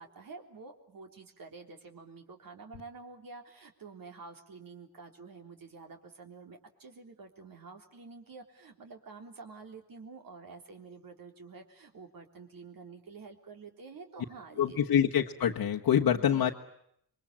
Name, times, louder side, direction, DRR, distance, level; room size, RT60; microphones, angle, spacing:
voice 1, 0.0-14.8 16.1-16.5, right 4 dB, 65° right, 4 dB, 3.8 m, -49 dB
voice 2, 14.6-16.5, left 9 dB, 85° left, -1 dB, 1.5 m, -26 dB
27.5 x 23.0 x 8.8 m, 0.72 s
wide cardioid pair, 120°, 36 cm